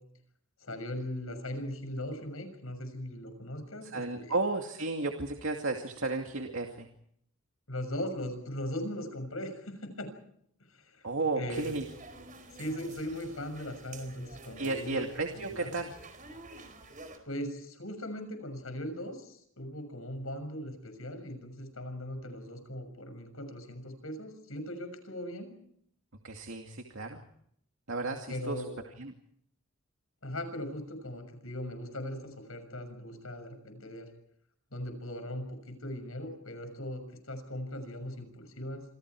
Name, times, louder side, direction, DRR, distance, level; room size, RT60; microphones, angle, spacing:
voice 1, 0.6-4.4 7.7-10.1 10.7-11.1 11.4-11.7 12.5-15.1 15.3-15.7 17.2-25.6 28.3-28.7 30.2-34.1 34.7-38.8, left 1 dB, 75° left, 8 dB, 6.6 m, -39 dB
voice 2, 3.8-6.9 11.0-11.9 14.6-15.9 26.2-27.2 27.9-28.6 29.0-29.1, right 3 dB, 65° right, 3 dB, 2.4 m, -33 dB
sound 1, 11.5-17.2, right 2 dB, 40° right, 4.8 m, -50 dB
28.5 x 26.5 x 4.8 m, 0.69 s
head